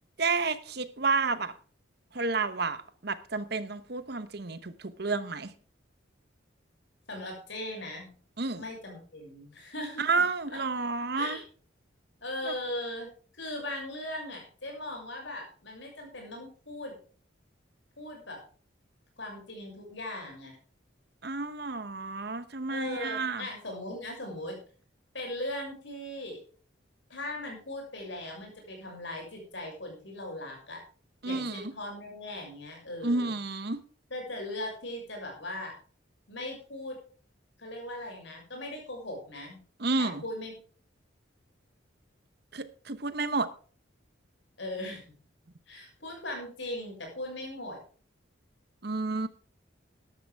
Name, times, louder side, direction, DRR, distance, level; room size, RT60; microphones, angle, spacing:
voice 1, 0.2-1.5 2.1-5.5 8.4-8.6 10.0-11.4 12.5-12.6 21.2-23.5 31.2-31.7 33.0-33.8 39.8-40.2 42.5-43.5 48.8-49.3, right 3 dB, 55° right, 0.9 m, -30 dB
voice 2, 7.1-8.1 8.5-10.1 10.5-10.8 11.2-11.4 12.2-13.1 13.3-17.0 18.0-18.4 19.2-20.6 22.7-24.6 25.1-26.4 27.1-30.8 31.2-33.3 34.1-35.7 36.3-37.0 37.6-39.6 40.0-40.5 44.6-45.1 45.7-47.8, left 1 dB, 65° left, 6.6 m, -39 dB
13.5 x 11.5 x 3.5 m
head